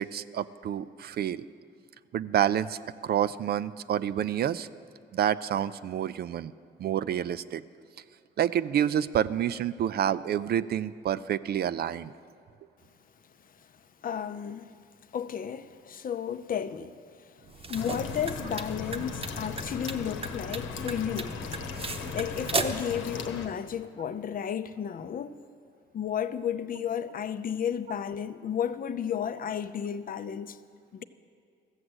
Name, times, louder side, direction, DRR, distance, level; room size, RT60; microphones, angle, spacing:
voice 1, 0.0-1.5 2.1-4.7 5.1-6.5 6.8-7.6 8.4-12.1, right 10 dB, 55° right, 0.4 m, -28 dB
voice 2, 14.0-14.8 15.1-17.0 17.2-21.4 22.1-25.4 25.9-30.6 30.9-31.0, left 8 dB, 45° left, 0.5 m, -33 dB
sound 1, 17.5-22.9, right 3 dB, 30° right, 0.9 m, -36 dB
sound 2, 17.7-23.5, left 6 dB, 80° left, 1.0 m, -38 dB
14.0 x 7.5 x 7.9 m
cardioid pair, 90°, 20 cm